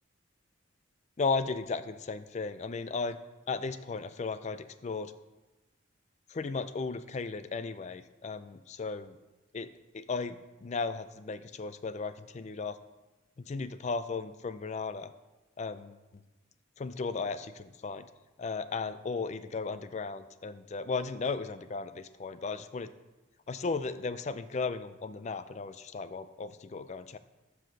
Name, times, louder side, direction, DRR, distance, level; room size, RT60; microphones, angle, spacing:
voice 1, 1.2-3.2 3.5-5.1 6.3-9.2 9.5-12.8 13.4-15.1 15.6-16.2 16.8-18.1 18.4-22.9 23.5-27.2, left 4 dB, 35° left, 13 dB, 0.4 m, -35 dB
7.6 x 5.7 x 6.5 m, 1.1 s
head